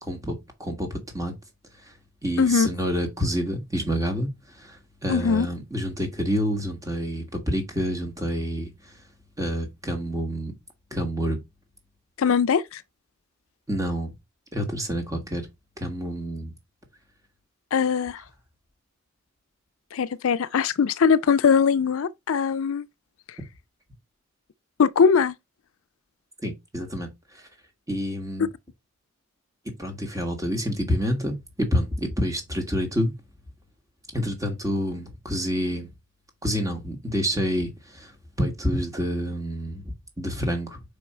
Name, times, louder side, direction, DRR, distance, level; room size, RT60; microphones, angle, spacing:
voice 1, 0.0-1.3 2.2-4.3 4.5-9.0 9.4-10.5 10.9-11.4 13.7-14.1 14.5-15.5 15.8-16.5 26.4-27.5 27.9-28.5 29.8-33.1 34.1-35.9 36.4-40.8, equal, 15° right, 1.5 m, -28 dB
voice 2, 2.4-2.7 5.1-5.5 12.2-12.8 17.7-18.2 19.9-22.8 24.8-25.3, left 6 dB, 70° left, 0.4 m, -21 dB
5.3 x 4.6 x 4.2 m
head